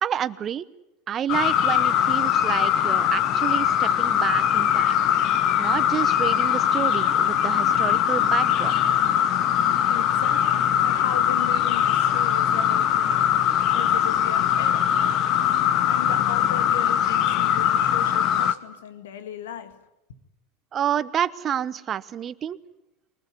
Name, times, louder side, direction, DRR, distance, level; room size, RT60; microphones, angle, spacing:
voice 1, 0.0-0.6 1.1-4.9 5.6-9.0 20.7-22.6, right 9 dB, 35° right, 1.0 m, -29 dB
sound 1, 1.3-18.5, left 10 dB, 50° left, 1.3 m, -21 dB
voice 2, 9.9-13.2 13.7-14.9 15.5-15.6 15.9-19.8 20.1-20.2, left 8 dB, 80° left, 2.1 m, -37 dB
22.5 x 20.0 x 9.9 m
hypercardioid pair, 95°, 0 cm